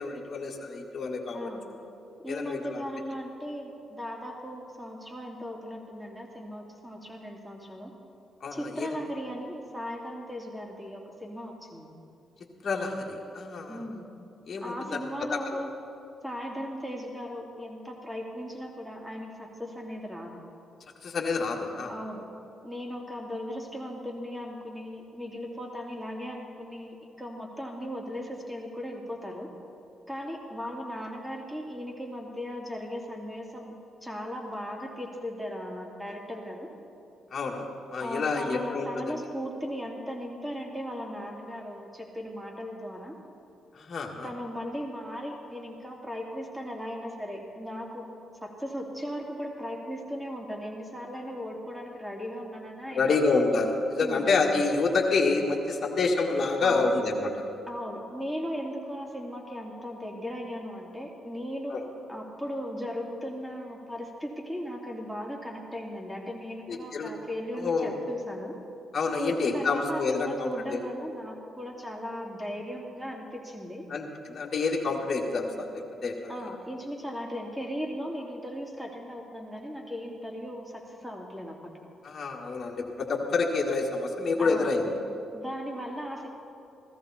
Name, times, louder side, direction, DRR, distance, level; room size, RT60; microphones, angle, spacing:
voice 1, 0.0-1.5 2.3-2.8 8.4-9.0 12.6-13.8 14.5-15.0 15.3-15.6 21.0-21.9 37.3-37.7 37.9-39.2 43.7-44.3 52.9-57.3 61.7-61.8 66.7-67.1 67.5-67.9 68.9-70.8 73.9-76.3 82.0-84.9, left 3 dB, 50° left, -1 dB, 1.8 m, -28 dB
voice 2, 1.3-1.7 2.2-7.9 8.5-11.9 13.7-14.1 14.6-15.7 16.2-20.4 21.9-22.3 22.6-29.5 30.1-33.7 34.0-36.7 38.0-43.2 44.2-48.1 48.4-53.2 54.0-54.3 56.6-57.0 57.7-61.8 62.1-68.6 69.2-73.9 76.3-81.7 84.4-84.7 85.3-86.3, equal, 5° right, 0 dB, 2.7 m, -37 dB
15.5 x 14.0 x 4.3 m, 2.7 s
supercardioid pair, 60°, 0 cm